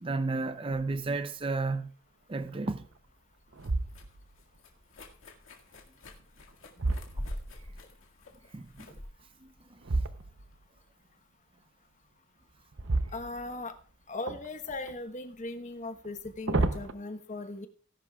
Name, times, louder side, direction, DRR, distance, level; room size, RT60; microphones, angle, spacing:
voice 1, 0.0-1.9 2.3-2.9 8.5-9.0 9.4-9.5, right 3 dB, 25° right, 0.5 m, -32 dB
sound 1, 0.7-1.2 1.7-1.8 2.4-3.0 3.5-4.4 6.1-7.8 9.8-10.6 12.7-13.8 14.3-15.0 16.0-16.9, right 2 dB, 60° right, 0.7 m, -33 dB
sound 2, 2.8-10.6, left 1 dB, 65° left, 2.0 m, -46 dB
voice 2, 13.1-13.7 14.1-17.7, left 2 dB, 35° left, 1.1 m, -38 dB
18.0 x 10.5 x 2.3 m
head